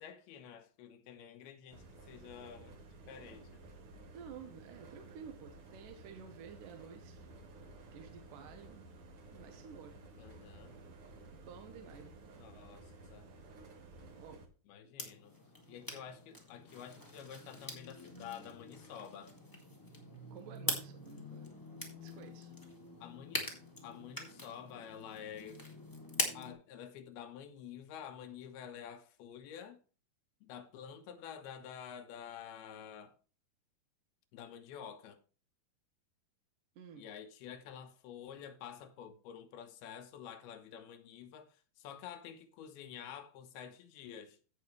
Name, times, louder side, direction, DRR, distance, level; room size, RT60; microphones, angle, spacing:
voice 1, 0.0-2.8 3.1-3.5 10.2-10.8 12.4-13.3 14.7-15.4 15.7-19.4 23.0-25.6 26.3-29.8 30.4-33.2 34.3-35.2 37.0-44.4, left 8 dB, 75° left, 2.9 m, -49 dB
sound 1, 1.7-14.5, right 2 dB, 55° right, 1.6 m, -54 dB
voice 2, 4.1-7.3 7.9-8.9 9.3-10.0 11.3-12.2 14.2-14.4 20.3-21.5 22.0-22.6 36.8-37.1, right 7 dB, 70° right, 2.2 m, -52 dB
sound 2, 15.0-26.5, left 1 dB, 15° left, 0.7 m, -43 dB
16.0 x 5.5 x 3.1 m
omnidirectional pair, 4.6 m